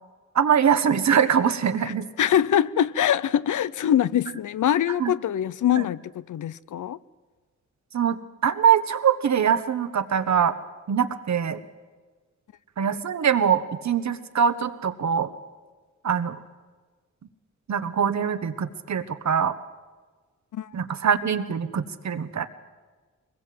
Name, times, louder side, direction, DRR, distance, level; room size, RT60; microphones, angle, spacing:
voice 1, 0.3-2.1 5.0-5.1 5.8-5.9 7.9-10.5 10.9-11.6 12.8-15.3 16.0-16.4 17.7-19.5 20.7-22.5, right 7 dB, 60° right, 1.2 m, -23 dB
voice 2, 1.8-7.0 20.5-20.7, left 10 dB, 75° left, 0.6 m, -24 dB
23.5 x 21.0 x 7.7 m
wide cardioid pair, 135°, 31 cm